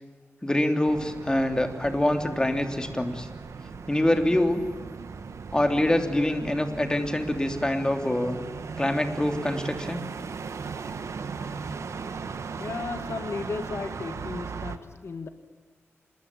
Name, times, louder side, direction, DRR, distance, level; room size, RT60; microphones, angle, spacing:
voice 1, 0.4-3.3 3.9-4.6 5.5-8.4 8.8-10.1, left 1 dB, 15° left, 6 dB, 3.2 m, -25 dB
sound 1, 0.8-14.8, right 5 dB, 85° right, 1.7 m, -37 dB
voice 2, 12.6-15.3, left 4 dB, 65° left, 8 dB, 1.8 m, -35 dB
26.5 x 22.0 x 9.0 m, 1.4 s
wide cardioid pair, 90°, 5 cm